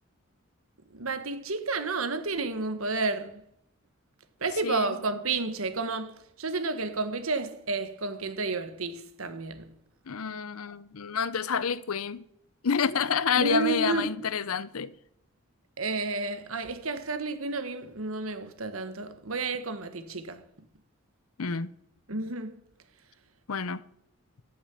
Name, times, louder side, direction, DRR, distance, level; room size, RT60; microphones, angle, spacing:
voice 1, 0.9-3.4 4.4-9.7 13.4-14.1 15.8-20.4 22.1-22.6, right 3 dB, 80° right, 1.5 m, -31 dB
voice 2, 4.6-4.9 10.1-12.2 12.6-14.9 21.4-21.7 23.5-23.8, left 6 dB, 85° left, 0.7 m, -28 dB
14.5 x 7.4 x 9.3 m
head